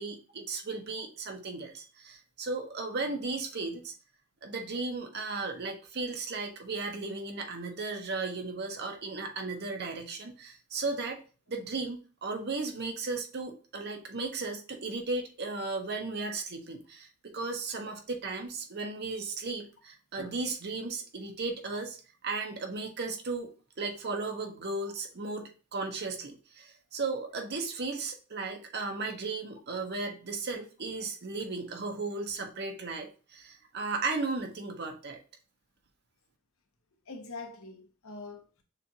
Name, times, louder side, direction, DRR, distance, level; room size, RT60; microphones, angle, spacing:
voice 1, 0.0-3.9 4.4-11.2 11.5-22.0 22.2-23.5 23.8-35.2, right 3 dB, 50° right, 0.8 m, -35 dB
voice 2, 37.1-38.6, left 3 dB, 80° left, 1.0 m, -44 dB
6.6 x 2.5 x 2.8 m
head